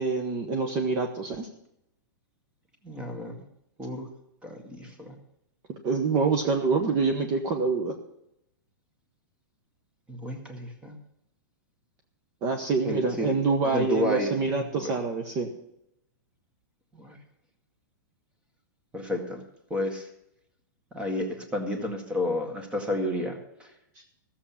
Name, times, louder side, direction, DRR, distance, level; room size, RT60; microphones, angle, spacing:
voice 1, 0.0-1.5 5.7-8.0 12.4-15.5, right 4 dB, 35° right, 4 dB, 1.1 m, -26 dB
voice 2, 2.8-3.3 3.8-4.1 4.4-5.2 10.1-10.9 12.8-13.3 13.6-14.3 14.6-14.9 17.0-17.2 18.9-19.4 19.7-20.1 20.9-23.7, left 1 dB, 10° right, 5 dB, 1.8 m, -31 dB
14.0 x 7.3 x 7.1 m, 0.80 s
hypercardioid pair, 145°, 10 cm